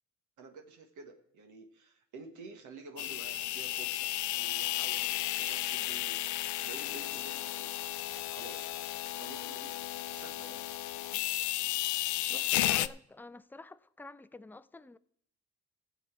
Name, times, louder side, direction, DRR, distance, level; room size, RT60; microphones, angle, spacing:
voice 1, 0.4-7.8 8.3-8.8 9.1-10.6 12.3-12.6, right 4 dB, 75° right, 1.6 m, -51 dB
sound 1, 3.0-12.9, left 16 dB, 80° left, 0.5 m, -33 dB
voice 2, 12.3-15.0, left 2 dB, 5° left, 0.4 m, -49 dB
17.0 x 7.2 x 4.6 m
cardioid pair, 90°, 30 cm